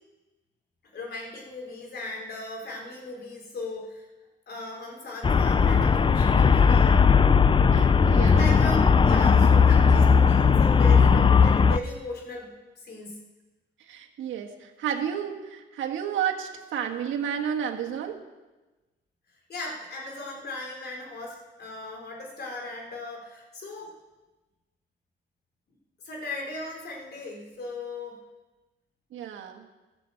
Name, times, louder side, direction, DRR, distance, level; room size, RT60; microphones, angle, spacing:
voice 1, 0.9-4.1 4.5-7.1 8.2-13.2 19.5-23.9 26.0-28.2, left 2 dB, 55° left, 0 dB, 3.9 m, -37 dB
Traffic noise roadway noise, 5.2-11.8, left 6 dB, 25° left, 0.5 m, -18 dB
voice 2, 7.7-8.5 13.8-18.1 29.1-29.6, right 8 dB, 80° right, 3 dB, 1.6 m, -31 dB
13.5 x 7.8 x 7.9 m, 1.2 s
cardioid pair, 90°, 20 cm